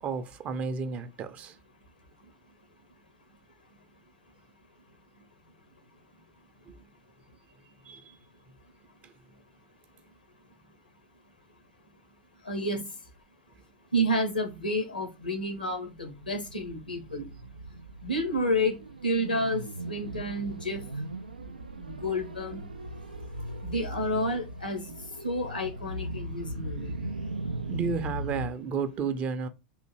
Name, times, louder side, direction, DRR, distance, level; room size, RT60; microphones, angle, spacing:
voice 1, 0.0-1.6 6.7-6.8 7.8-8.0 9.0-9.1 27.7-29.5, right 5 dB, 30° right, 0.5 m, -32 dB
voice 2, 12.5-12.8 13.9-17.3 18.0-20.8 21.8-22.6 23.6-24.9 25.2-26.9, equal, 80° left, 1.1 m, -30 dB
sound 1, 15.4-28.5, right 1 dB, 80° right, 0.3 m, -38 dB
3.5 x 2.7 x 4.3 m
figure-of-eight pair, 90°, 5 cm